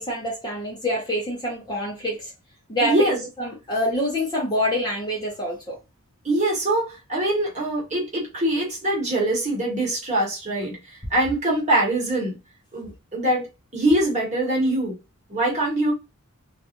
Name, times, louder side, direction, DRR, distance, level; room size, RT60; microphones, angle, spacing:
voice 1, 0.0-2.3 2.7-2.9 3.4-5.8, equal, 20° left, 0.7 m, -26 dB
voice 2, 2.8-3.2 6.2-12.4 12.7-13.4 13.7-15.0 15.3-15.9, right 1 dB, 30° right, 1.1 m, -23 dB
2.4 x 2.3 x 2.8 m
head